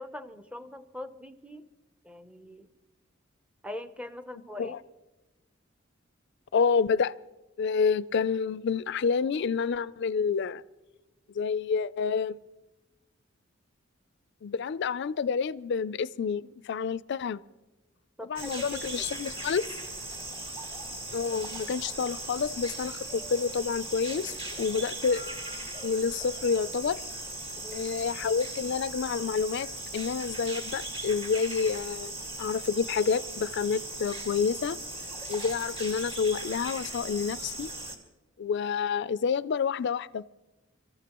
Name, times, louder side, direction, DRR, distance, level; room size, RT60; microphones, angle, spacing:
voice 1, 0.0-1.7 2.0-2.7 3.6-4.7 18.2-19.1 27.6-27.9, left 1 dB, 5° right, 0.6 m, -42 dB
voice 2, 4.3-4.8 6.5-7.1 7.6-10.6 11.3-12.4 14.4-17.4 18.2-19.7 21.1-25.2 25.8-27.0 27.7-29.7 29.9-34.8 35.3-37.7 38.4-40.2, left 5 dB, 60° left, 0.4 m, -29 dB
sound 1, 18.4-38.0, right 2 dB, 30° right, 1.8 m, -38 dB
25.5 x 14.5 x 3.0 m
head